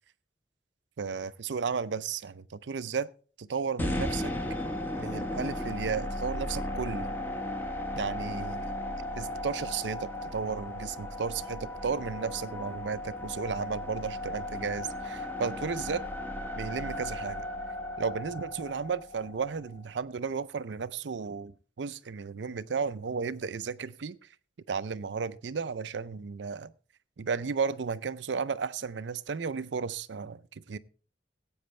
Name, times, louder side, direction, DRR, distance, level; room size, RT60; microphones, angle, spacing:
voice 1, 1.0-3.1 3.4-4.6 5.0-7.2 8.0-8.7 9.2-16.0 16.6-17.5 18.0-24.2 24.7-26.7 27.2-30.8, right 5 dB, 85° right, 0.5 m, -34 dB
sound 1, 3.8-19.9, left 1 dB, 10° left, 1.0 m, -36 dB
17.0 x 8.7 x 3.2 m
head